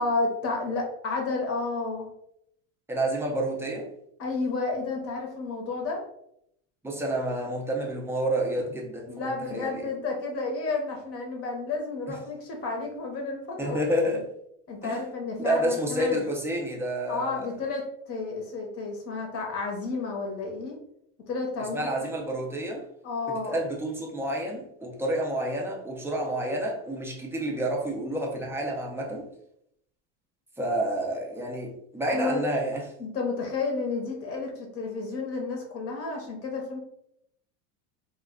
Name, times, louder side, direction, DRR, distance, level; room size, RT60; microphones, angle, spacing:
voice 1, 0.0-2.1 4.2-6.0 9.1-13.8 14.7-16.2 17.1-20.8 21.3-21.9 23.0-23.6 32.1-32.4 33.0-36.8, left 3 dB, 40° left, 1 dB, 0.8 m, -31 dB
voice 2, 2.9-3.9 6.8-9.9 13.6-14.2 14.8-15.0 15.4-17.5 21.7-22.8 23.3-29.3 30.6-32.8, right 1 dB, 5° right, -1 dB, 0.5 m, -29 dB
2.3 x 2.2 x 3.6 m, 0.74 s
supercardioid pair, 125°, 37 cm